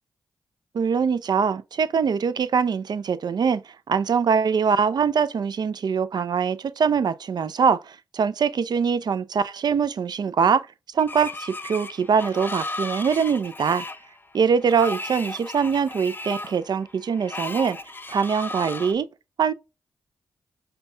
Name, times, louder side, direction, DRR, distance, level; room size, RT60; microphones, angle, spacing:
voice 1, 0.7-3.6 3.9-10.7 10.9-13.8 14.3-17.8 18.1-19.1 19.4-19.5, right 6 dB, 55° right, 0.4 m, -23 dB
Screech, 11.0-18.9, left 2 dB, 25° left, 0.5 m, -35 dB
5.1 x 2.2 x 2.6 m
supercardioid pair, 40°, 8 cm